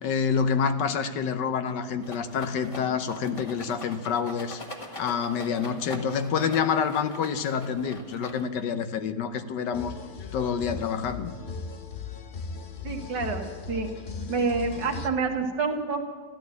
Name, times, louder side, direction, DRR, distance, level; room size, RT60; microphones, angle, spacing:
voice 1, 0.0-4.6 5.0-9.9 10.3-11.3, left 6 dB, 75° left, 9 dB, 1.5 m, -27 dB
Rattle, 2.0-8.7, equal, 20° left, 1.4 m, -43 dB
sound 1, 9.7-15.1, left 5 dB, 50° left, 0.6 m, -38 dB
voice 2, 12.8-13.9 14.3-16.0, right 4 dB, 80° right, 3 dB, 2.2 m, -28 dB
13.0 x 12.5 x 8.2 m, 1.5 s
omnidirectional pair, 1.9 m